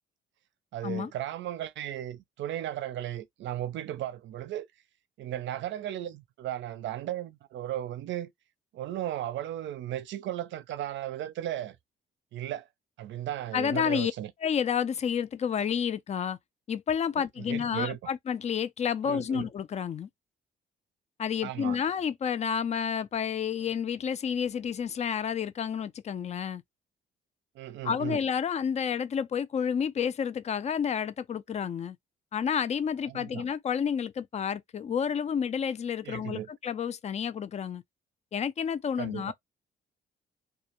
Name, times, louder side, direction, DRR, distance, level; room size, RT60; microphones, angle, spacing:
voice 1, 0.7-4.7 5.2-8.3 8.7-11.8 12.3-12.7 13.0-14.3 17.2-18.0 19.0-19.5 21.4-21.8 27.6-28.2 33.1-33.4 36.0-36.5 39.0-39.3, right 12 dB, 70° right, 0.4 m, -35 dB
voice 2, 13.5-14.1 14.4-16.4 16.7-20.1 21.2-26.6 27.8-32.0 32.3-37.8 38.3-39.3, left 7 dB, 35° left, 0.3 m, -30 dB
2.3 x 2.0 x 2.8 m
cardioid pair, 90°, 20 cm